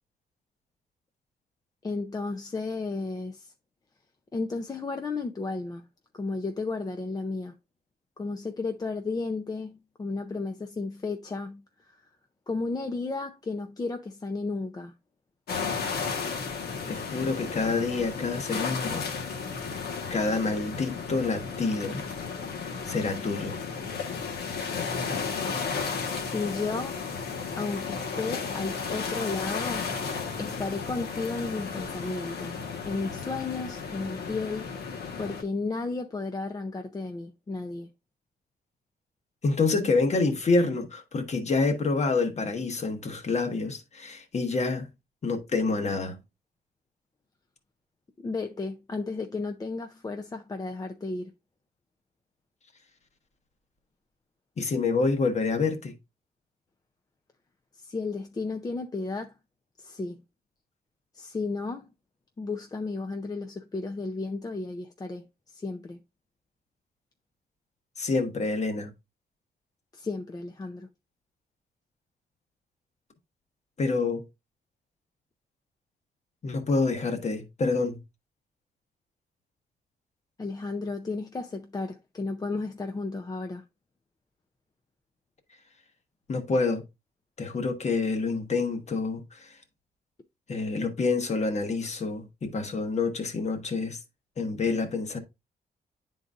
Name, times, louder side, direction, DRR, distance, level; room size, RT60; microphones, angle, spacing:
voice 1, 1.8-3.5 4.3-5.8 6.1-7.6 8.2-12.0 12.5-14.9 26.3-27.0 27.6-32.5 32.8-34.7 35.2-37.9 48.2-51.3 57.8-59.3 59.8-60.2 61.1-61.9 62.4-65.2 65.5-66.0 69.9-70.9 80.4-83.6, left 3 dB, 25° left, 0.5 m, -33 dB
sound 1, 15.5-35.4, left 5 dB, 80° left, 1.3 m, -34 dB
voice 2, 16.9-19.1 20.1-22.0 22.9-23.6 39.4-44.9 45.2-46.2 54.6-55.9 68.0-68.9 73.8-74.2 76.4-78.0 86.3-86.8 87.4-89.6 90.5-94.0 94.4-95.2, left 3 dB, 45° left, 1.1 m, -27 dB
9.8 x 3.9 x 2.4 m
cardioid pair, 110°, 16 cm